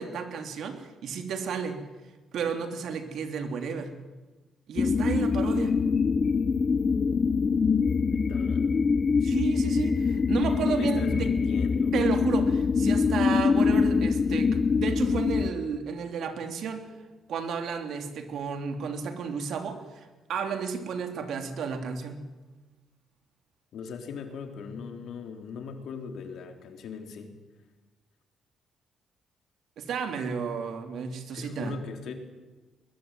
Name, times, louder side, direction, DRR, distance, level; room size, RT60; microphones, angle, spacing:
voice 1, 0.0-1.8 2.3-3.9 4.7-5.8 9.2-11.3 11.9-16.9 17.3-22.2 29.8-31.8, right 6 dB, 70° right, 6 dB, 3.4 m, -32 dB
sound 1, 4.8-15.5, left 5 dB, 40° left, 1.0 m, -24 dB
voice 2, 8.0-8.7 10.6-11.9 23.7-27.3 31.3-32.2, left 6 dB, 70° left, 4 dB, 4.1 m, -39 dB
22.0 x 21.5 x 9.3 m, 1.2 s
cardioid pair, 90°, 0 cm